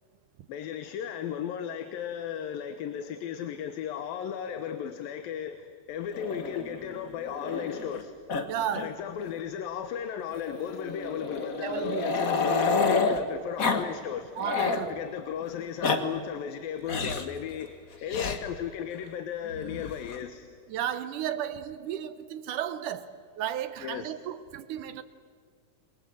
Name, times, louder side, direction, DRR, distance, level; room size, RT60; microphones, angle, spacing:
voice 1, 0.5-8.2 8.8-14.3 14.9-17.7 18.0-20.5 23.8-24.1, left 9 dB, 85° left, 2.9 m, -35 dB
Growling, 6.1-8.0 8.3-8.4 8.7-8.9 9.2-9.3 10.3-13.2 13.6-13.8 14.2-14.9 15.6-16.0 16.9-17.3 18.1-18.4 19.5-20.2, left 4 dB, 50° left, 1.0 m, -29 dB
voice 2, 8.5-9.0 11.6-12.3 14.4-14.9 20.7-25.0, right 10 dB, 75° right, 2.2 m, -34 dB
29.5 x 22.0 x 7.8 m
omnidirectional pair, 4.0 m